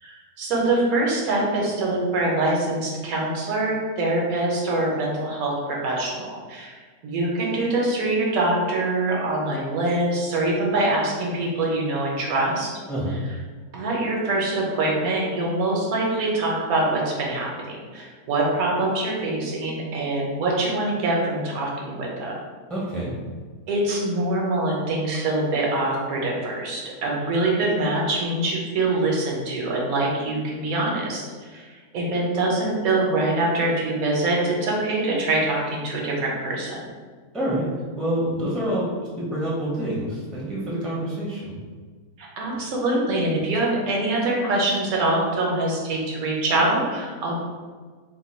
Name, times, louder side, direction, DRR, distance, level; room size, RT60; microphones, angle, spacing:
voice 1, 0.0-6.7 7.0-12.7 13.7-22.3 23.7-36.8 42.2-47.4, right 2 dB, 75° right, -2 dB, 1.2 m, -24 dB
voice 2, 22.7-23.1 37.3-37.7 38.0-38.9 39.3-41.5, right 1 dB, ahead, -6 dB, 0.4 m, -27 dB
2.9 x 2.2 x 4.2 m, 1.5 s
omnidirectional pair, 1.5 m